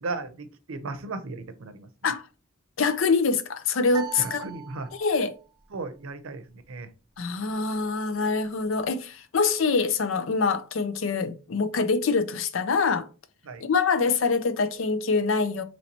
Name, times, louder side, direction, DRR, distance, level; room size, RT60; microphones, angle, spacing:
voice 1, 0.0-1.9 4.2-4.9 5.7-6.4 6.7-6.9 13.5-13.7, right 3 dB, 85° right, 0.6 m, -35 dB
voice 2, 2.8-4.5 4.9-5.4 7.2-13.1 13.6-15.6, left 4 dB, 70° left, 0.5 m, -25 dB
sound 1, 3.9-5.4, right 7 dB, 20° right, 0.7 m, -40 dB
3.1 x 2.9 x 4.0 m
head